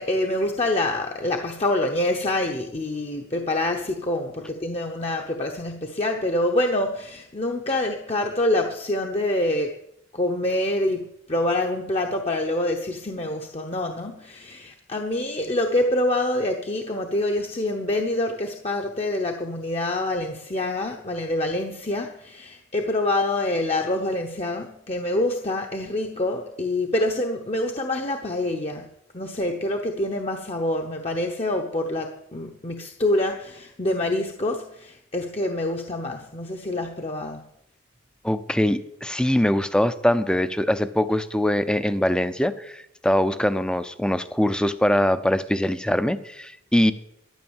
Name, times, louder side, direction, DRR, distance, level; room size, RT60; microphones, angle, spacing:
voice 1, 0.0-9.7 10.1-28.9 29.1-37.4, left 1 dB, 30° left, 2 dB, 0.9 m, -26 dB
voice 2, 38.2-46.9, left 1 dB, 5° left, 12 dB, 0.6 m, -22 dB
12.5 x 9.8 x 7.2 m, 0.76 s
head